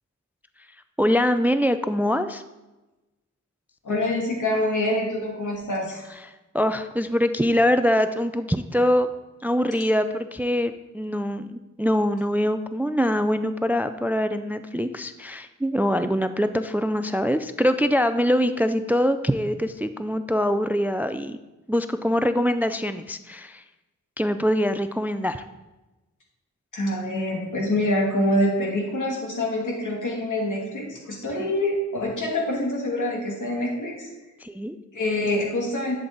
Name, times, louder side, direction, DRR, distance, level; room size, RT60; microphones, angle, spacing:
voice 1, 1.0-2.4 6.5-9.1 9.4-21.4 21.7-23.6 24.2-25.4 34.4-34.8, equal, 5° right, 10 dB, 0.3 m, -23 dB
voice 2, 3.8-6.1 26.7-34.1 34.9-36.0, left 1 dB, 75° left, -1 dB, 2.5 m, -25 dB
11.5 x 7.4 x 3.9 m, 1.1 s
wide cardioid pair, 115°, 31 cm